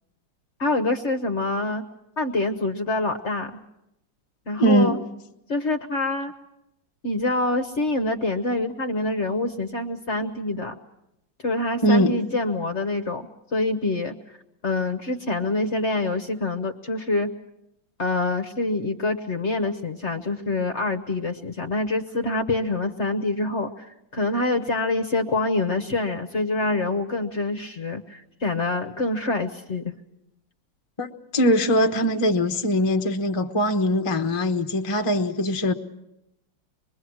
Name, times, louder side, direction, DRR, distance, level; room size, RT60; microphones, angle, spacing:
voice 1, 0.6-1.8 2.2-3.6 4.5-5.0 5.5-6.3 7.0-10.7 11.4-13.3 13.5-14.1 14.6-17.3 18.0-29.9, left 2 dB, 45° left, 7 dB, 1.1 m, -26 dB
voice 2, 4.6-5.0 11.8-12.2 31.0-31.1 31.3-35.7, equal, 20° left, 5 dB, 0.8 m, -21 dB
25.5 x 22.0 x 6.3 m, 0.85 s
omnidirectional pair, 2.0 m